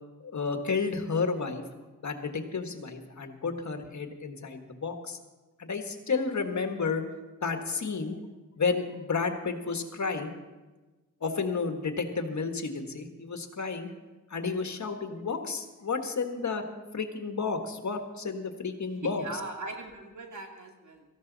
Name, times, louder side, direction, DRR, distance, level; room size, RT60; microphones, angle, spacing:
voice 1, 0.2-1.6 2.0-5.2 5.6-7.0 7.4-8.2 8.6-10.3 11.2-13.9 14.3-16.6 16.9-19.2, left 4 dB, 65° left, 6 dB, 1.6 m, -31 dB
voice 2, 19.0-21.0, right 2 dB, 65° right, 2 dB, 2.6 m, -40 dB
18.0 x 14.5 x 4.1 m, 1.2 s
wide cardioid pair, 75°, 31 cm